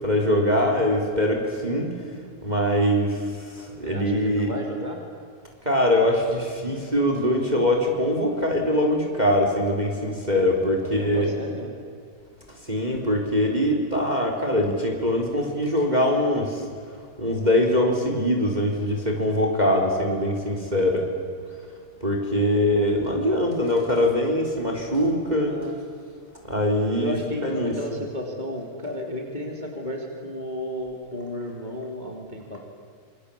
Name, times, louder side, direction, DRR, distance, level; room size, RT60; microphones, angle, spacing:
voice 1, 0.0-1.9 2.4-4.5 5.6-11.3 12.7-16.6 17.2-21.1 22.0-25.6 26.4-27.1 27.4-27.8, left 1 dB, 10° right, 2 dB, 3.7 m, -23 dB
voice 2, 3.8-5.0 10.8-11.7 25.5-25.7 27.0-32.6, left 1 dB, 15° left, 2 dB, 3.1 m, -33 dB
27.5 x 25.0 x 8.7 m, 2.4 s
omnidirectional pair, 3.8 m